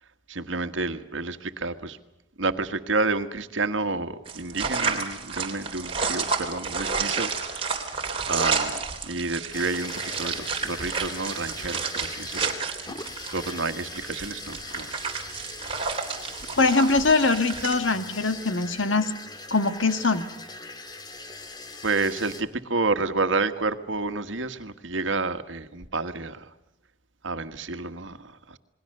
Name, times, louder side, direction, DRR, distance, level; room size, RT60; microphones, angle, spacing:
voice 1, 0.3-2.0 2.4-7.3 8.3-12.5 13.3-15.0 21.8-26.5 27.2-28.6, right 3 dB, 80° right, 9 dB, 1.6 m, -29 dB
sound 1, 4.2-17.7, right 5 dB, 30° right, 3.4 m, -31 dB
sound 2, 9.5-22.4, left 3 dB, 20° left, 1.8 m, -41 dB
voice 2, 16.6-19.1 19.5-20.3, left 3 dB, 85° left, 9 dB, 1.7 m, -22 dB
28.5 x 21.5 x 6.7 m, 0.91 s
head